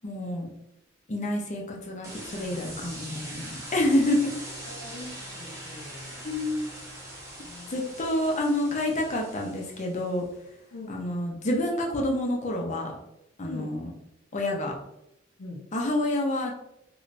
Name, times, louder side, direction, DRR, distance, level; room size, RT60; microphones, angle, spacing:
voice 1, 0.0-0.5 1.1-4.3 6.2-6.7 7.7-10.2 10.9-12.9 13.4-13.9 14.3-14.7 15.7-16.5, left 1 dB, 40° left, 1 dB, 0.6 m, -28 dB
sound 1, 2.0-10.3, right 1 dB, 15° right, 0.9 m, -42 dB
voice 2, 4.6-6.3 7.4-7.9 10.7-10.9 13.5-13.7 15.4-15.6, left 2 dB, 85° left, -5 dB, 0.7 m, -43 dB
3.2 x 3.0 x 2.5 m, 0.82 s
head